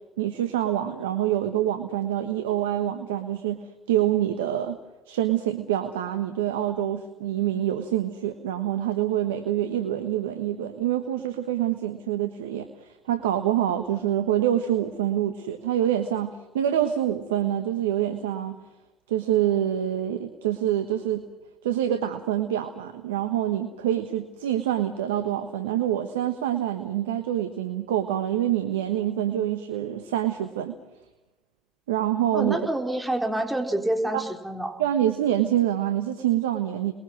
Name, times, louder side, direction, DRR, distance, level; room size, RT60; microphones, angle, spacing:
voice 1, 0.2-4.8 5.1-18.6 19.1-21.2 21.6-30.8 31.9-32.6 34.1-34.2 34.8-36.9, right 11 dB, 85° right, 8 dB, 1.3 m, -26 dB
voice 2, 32.3-34.8, right 1 dB, 10° right, 4 dB, 4.0 m, -27 dB
29.5 x 22.0 x 6.4 m, 1.0 s
hypercardioid pair, 55°, 0 cm